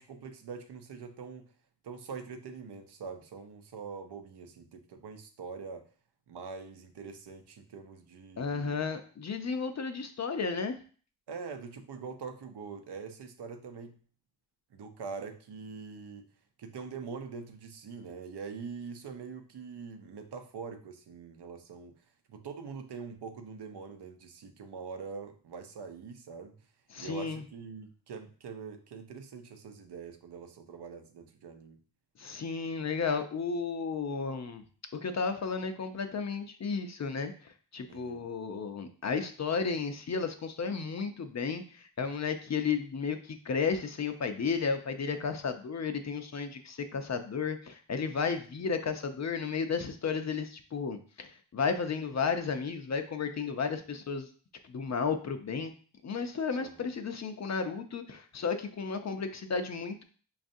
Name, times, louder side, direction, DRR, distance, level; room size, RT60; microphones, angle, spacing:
voice 1, 0.0-1.5 1.8-5.9 6.3-8.9 11.3-14.0 14.7-16.3 16.6-26.5 27.0-31.8 37.9-38.2 48.6-48.7 56.6-56.9, right 5 dB, 70° right, 6 dB, 0.7 m, -44 dB
voice 2, 8.4-10.8 26.9-27.4 32.2-34.6 34.9-37.3 37.7-54.3 54.6-55.7 56.0-60.0, left 5 dB, 40° left, 8 dB, 0.5 m, -33 dB
5.2 x 2.4 x 2.6 m, 0.42 s
cardioid pair, 75°, 42 cm